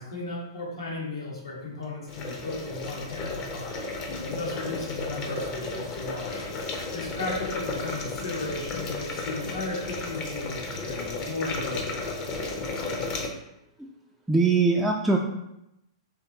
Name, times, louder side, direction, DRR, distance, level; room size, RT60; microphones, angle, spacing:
voice 1, 0.0-3.7 4.3-6.5 6.9-12.0, left 2 dB, 75° left, -3 dB, 1.4 m, -35 dB
sound 1, 2.1-13.3, left 3 dB, 35° left, 0.7 m, -33 dB
voice 2, 14.3-15.2, right 4 dB, 5° right, -2 dB, 0.3 m, -22 dB
4.3 x 3.0 x 2.8 m, 0.85 s
figure-of-eight pair, 110°, 3 cm